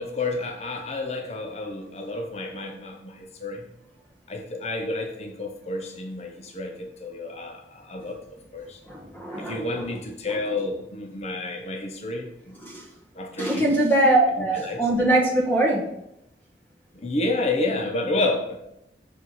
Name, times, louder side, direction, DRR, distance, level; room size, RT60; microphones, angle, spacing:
voice 1, 0.0-3.7 4.3-8.2 8.5-8.8 9.4-12.6 13.2-13.8 14.4-14.8 17.0-18.6, left 2 dB, 35° left, 3 dB, 0.6 m, -30 dB
voice 2, 8.9-9.9 12.6-12.8 13.4-15.8, right 1 dB, 10° left, -3 dB, 1.4 m, -22 dB
6.4 x 4.7 x 4.1 m, 0.82 s
head